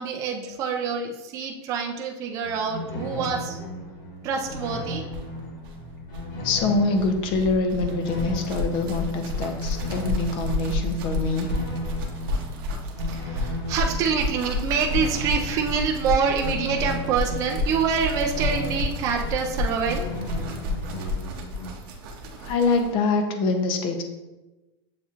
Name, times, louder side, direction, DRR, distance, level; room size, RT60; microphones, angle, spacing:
voice 1, 0.0-3.7 4.2-5.1 13.1-20.1, right 6 dB, 25° right, 2 dB, 0.3 m, -26 dB
sound 1, 2.4-21.7, left 1 dB, 50° left, 1.4 m, -36 dB
sound 2, 5.1-22.9, left 2 dB, 55° right, 0.7 m, -31 dB
voice 2, 6.4-11.5 22.4-24.0, left 3 dB, 35° left, 5 dB, 0.6 m, -24 dB
7.4 x 2.9 x 2.4 m, 1.1 s
supercardioid pair, 160°, 14 cm